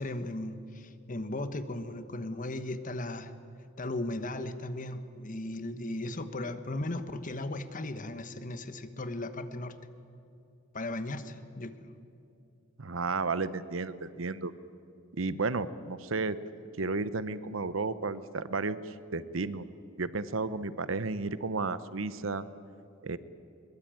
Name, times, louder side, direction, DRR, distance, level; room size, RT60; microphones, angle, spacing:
voice 1, 0.0-3.3 3.8-9.7 10.7-11.8, left 1 dB, 40° left, 10 dB, 1.3 m, -36 dB
voice 2, 12.8-14.5 15.2-16.4 16.8-19.6 20.0-22.4 23.0-23.2, right 3 dB, 75° right, 15 dB, 0.9 m, -33 dB
22.0 x 21.5 x 9.1 m, 2.6 s
head